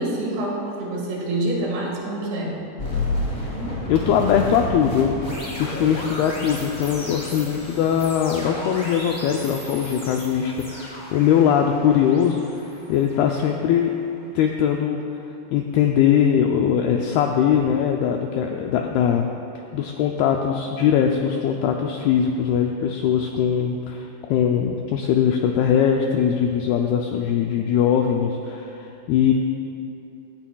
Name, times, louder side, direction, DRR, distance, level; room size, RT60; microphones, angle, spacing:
voice 1, 0.0-2.6, right 1 dB, 80° right, -3 dB, 4.1 m, -26 dB
sound 1, 2.8-13.8, left 1 dB, 10° left, 1.8 m, -32 dB
voice 2, 3.9-5.2 5.6-12.4 12.9-13.9 14.4-15.0 15.5-19.3 19.7-29.3, left 8 dB, 85° left, 2 dB, 2.2 m, -21 dB
17.0 x 13.0 x 2.3 m, 2.7 s
omnidirectional pair, 5.0 m